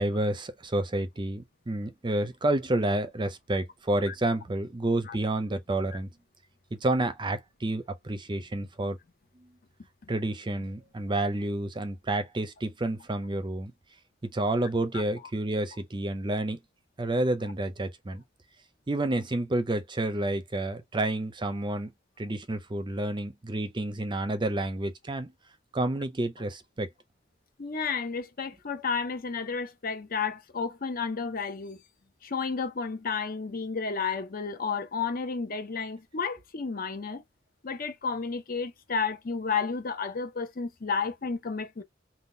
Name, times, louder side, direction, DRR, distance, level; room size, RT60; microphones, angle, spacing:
voice 1, 0.0-6.1 6.8-9.0 10.1-13.7 14.3-16.6 17.0-18.2 18.9-21.9 22.2-25.3 25.7-26.9, right 1 dB, 25° right, 0.5 m, -29 dB
voice 2, 27.6-31.8 32.2-37.2 37.6-41.8, left 5 dB, 50° left, 0.7 m, -32 dB
3.6 x 2.3 x 2.6 m
head